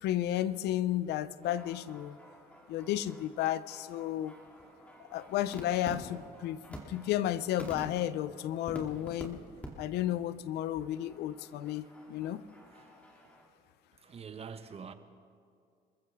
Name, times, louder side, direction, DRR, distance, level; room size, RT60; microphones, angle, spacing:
voice 1, 0.0-2.2 2.7-4.3 5.1-9.4 9.8-12.4, left 12 dB, 80° left, 0.6 m, -33 dB
sound 1, 1.4-9.2 9.6-9.7 9.9-10.2 10.6-13.5, equal, 10° left, 2.6 m, -49 dB
voice 2, 14.0-14.9, right 6 dB, 35° right, 1.0 m, -45 dB
27.5 x 14.5 x 3.6 m
cardioid pair, 110°, 17 cm